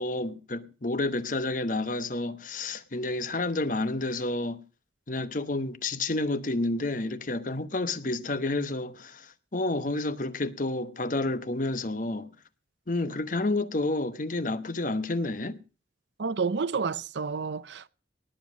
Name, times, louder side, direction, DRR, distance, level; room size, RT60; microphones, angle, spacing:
voice 1, 0.0-4.6 5.1-12.3 12.9-15.6, left 2 dB, 45° left, 0.9 m, -30 dB
voice 2, 16.2-17.9, right 5 dB, 75° right, 0.6 m, -30 dB
19.0 x 7.3 x 6.2 m
head